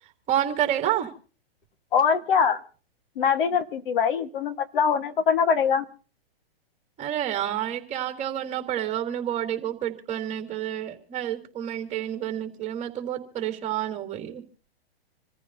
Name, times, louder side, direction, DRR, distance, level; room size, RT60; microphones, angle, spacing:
voice 1, 0.3-1.1 7.0-14.4, right 11 dB, 20° right, 4 dB, 3.2 m, -29 dB
voice 2, 1.9-2.6 3.2-5.8, left 6 dB, 60° left, 8 dB, 1.6 m, -23 dB
27.5 x 14.5 x 2.8 m, 0.38 s
hypercardioid pair, 130°, 31 cm